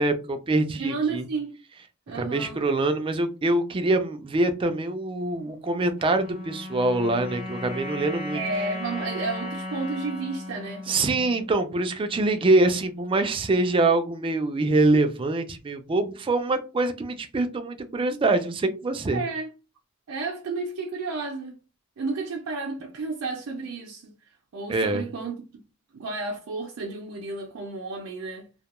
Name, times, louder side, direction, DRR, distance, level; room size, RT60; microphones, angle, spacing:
voice 1, 0.0-1.3 2.1-8.4 10.9-19.2 24.7-25.1, right 2 dB, 25° right, 0.3 m, -24 dB
voice 2, 0.8-1.5 2.1-2.6 8.3-11.0 19.1-19.5 20.1-21.6 22.0-25.6 25.9-28.5, right 3 dB, 85° right, 0.4 m, -32 dB
sound 1, 6.0-12.4, left 1 dB, 35° left, 1.0 m, -36 dB
2.2 x 2.2 x 2.9 m
head